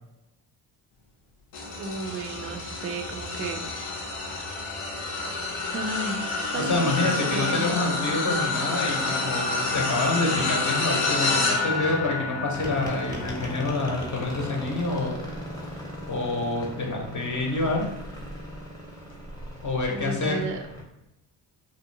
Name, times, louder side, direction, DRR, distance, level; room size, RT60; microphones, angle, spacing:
sound 1, 1.5-17.0 17.6-17.8 19.1-19.2, left 3 dB, 75° left, 0.7 m, -29 dB
voice 1, 1.8-3.7 4.3-4.8 5.7-7.0 7.3-7.8 19.9-20.6, right 3 dB, 30° right, 3 dB, 0.4 m, -34 dB
voice 2, 6.5-15.1 16.1-17.9 19.6-20.4, left 2 dB, 40° left, 0 dB, 0.8 m, -27 dB
sound 2, 12.5-20.8, equal, 10° left, 0.8 m, -38 dB
2.6 x 2.1 x 2.6 m, 0.92 s
supercardioid pair, 55°, 48 cm